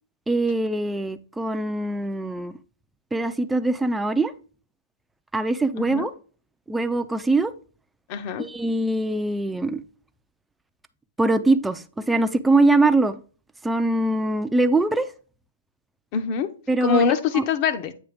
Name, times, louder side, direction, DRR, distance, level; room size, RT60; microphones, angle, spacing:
voice 1, 0.3-2.5 3.1-4.3 5.3-6.1 6.7-7.5 8.4-9.8 11.2-13.2 13.6-15.1 16.7-17.0 17.3-17.4, right 2 dB, 5° right, 0.4 m, -22 dB
voice 2, 5.8-6.1 8.1-8.5 16.1-16.5 16.8-17.9, left 6 dB, 35° left, 0.8 m, -23 dB
8.2 x 2.9 x 5.1 m
hypercardioid pair, 150°, 0 cm